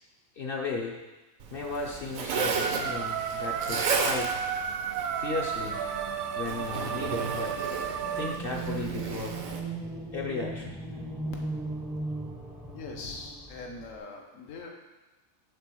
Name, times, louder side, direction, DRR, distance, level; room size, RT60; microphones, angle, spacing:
voice 1, 0.4-1.0 1.5-4.4 5.1-5.9 6.3-7.6 8.2-9.4 10.1-10.8, left 3 dB, 50° left, -1 dB, 0.8 m, -35 dB
Zipper (clothing), 1.4-9.6, right 5 dB, 85° right, 1.2 m, -34 dB
sound 1, 2.3-8.4, right 7 dB, 65° right, 0.5 m, -33 dB
sound 2, 8.0-14.0, right 3 dB, ahead, 0.5 m, -37 dB
voice 2, 12.7-14.7, left 3 dB, 75° left, 1 dB, 1.3 m, -42 dB
6.7 x 3.7 x 6.2 m, 1.1 s
omnidirectional pair, 1.4 m